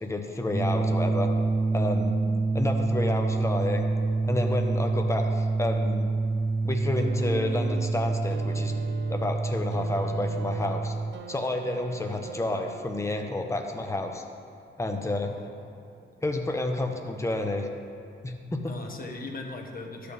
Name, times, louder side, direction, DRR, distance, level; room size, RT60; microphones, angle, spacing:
voice 1, 0.0-1.3 1.7-2.2 2.5-3.9 4.2-6.1 6.6-8.7 9.1-10.9 11.3-14.2 14.8-15.3 16.2-17.7 18.2-18.7, left 2 dB, 15° left, 3 dB, 0.9 m, -30 dB
sound 1, 0.5-11.1, right 3 dB, 15° right, 0.4 m, -27 dB
sound 2, 7.0-13.2 14.2-14.3, right 5 dB, 60° right, 0.6 m, -41 dB
voice 2, 15.2-15.8 18.6-20.1, left 3 dB, 45° left, 2 dB, 1.3 m, -40 dB
12.0 x 6.7 x 3.5 m, 2.5 s
cardioid pair, 75°, 21 cm